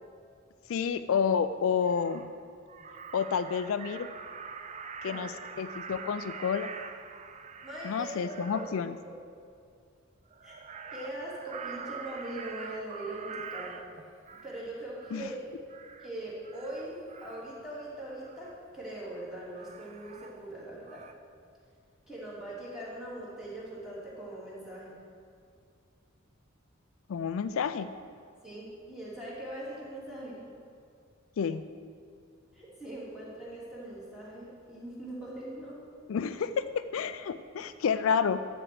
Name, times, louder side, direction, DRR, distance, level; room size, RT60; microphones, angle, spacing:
voice 1, 0.7-2.3 3.1-4.1 5.0-6.7 7.8-9.0 15.1-15.3 27.1-27.9 31.4-31.6 36.1-38.4, left 6 dB, 80° left, 12 dB, 0.4 m, -30 dB
Crow, 1.3-1.4 1.8-2.3 2.7-8.7 10.3-14.6 15.0-15.4 15.7-16.1 16.4-17.5 18.2-18.5 19.6-20.6 20.9-21.1, right 5 dB, 35° right, 0.5 m, -44 dB
voice 2, 7.6-8.7 9.1-9.2 10.4-10.5 10.9-13.7 14.3-15.4 16.0-21.0 22.1-25.0 28.4-30.4 32.5-35.7, right 1 dB, ahead, -8 dB, 3.0 m, -41 dB
13.0 x 4.4 x 7.9 m, 2.3 s
head